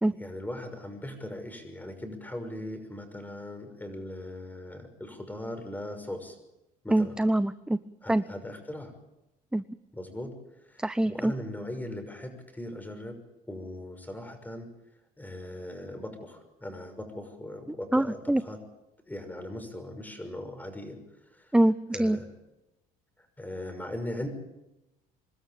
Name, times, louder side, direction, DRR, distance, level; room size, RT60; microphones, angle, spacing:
voice 1, 0.2-6.4 6.8-7.1 8.0-8.9 9.9-13.2 13.5-14.7 15.2-18.6 19.1-21.0 21.3-21.6 21.9-22.2 23.2-24.3, left 1 dB, 10° left, 7 dB, 6.0 m, -39 dB
voice 2, 6.9-7.8 8.1-8.2 9.5-9.6 10.8-11.3 17.9-18.4 21.5-22.2, right 1 dB, 5° right, 14 dB, 0.6 m, -24 dB
25.5 x 13.0 x 8.9 m, 0.95 s
supercardioid pair, 85°, 17 cm